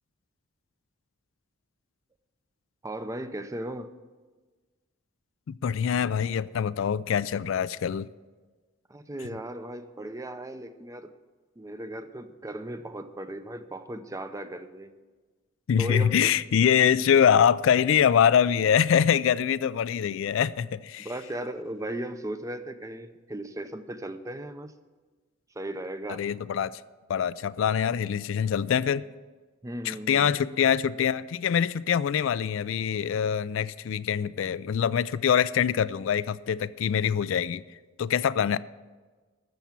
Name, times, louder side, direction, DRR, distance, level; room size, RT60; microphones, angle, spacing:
voice 1, 2.8-3.9 8.9-11.1 11.6-14.9 15.8-16.3 21.0-24.7 25.5-26.2 29.6-30.3, right 1 dB, 15° right, 0.6 m, -37 dB
voice 2, 5.5-8.1 15.7-21.1 26.1-26.8 27.1-29.1 29.8-37.6 38.0-38.6, left 8 dB, 65° left, 0.3 m, -24 dB
13.0 x 7.0 x 7.3 m
head